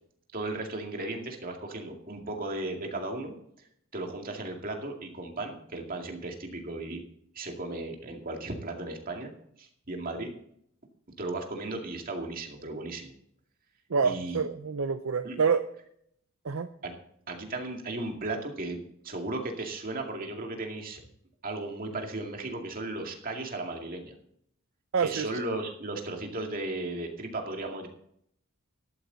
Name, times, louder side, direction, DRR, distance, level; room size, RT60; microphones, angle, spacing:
voice 1, 0.3-3.3 3.9-7.0 7.3-9.3 9.6-10.3 11.2-13.1 14.0-14.4 15.2-15.4 16.8-16.9 17.3-18.8 19.0-21.0 21.4-24.1 25.0-27.9, right 2 dB, 40° right, 2 dB, 2.3 m, -35 dB
voice 2, 13.9-15.6 16.4-16.7 24.9-25.3, right 5 dB, 65° right, 9 dB, 0.6 m, -27 dB
13.5 x 12.0 x 4.0 m, 0.69 s
head